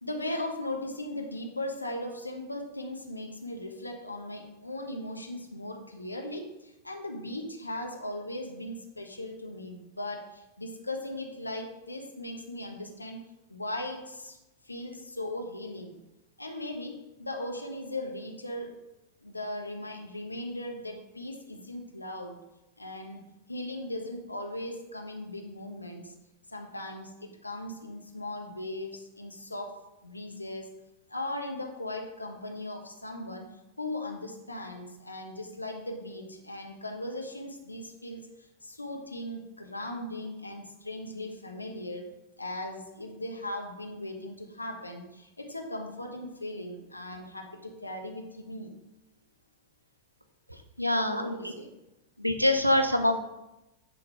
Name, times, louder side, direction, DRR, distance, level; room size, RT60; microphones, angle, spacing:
voice 1, 0.0-13.2 13.5-14.4 14.6-16.0 16.4-18.8 19.2-22.4 22.8-23.2 23.5-26.1 26.5-29.8 30.0-30.7 31.1-42.1 42.4-48.7 51.0-51.7, left 1 dB, 85° left, 3 dB, 1.2 m, -38 dB
voice 2, 50.8-51.5 52.2-53.2, left 1 dB, 90° right, 7 dB, 0.8 m, -25 dB
10.0 x 3.9 x 4.8 m, 0.94 s
figure-of-eight pair, 90°, 0 cm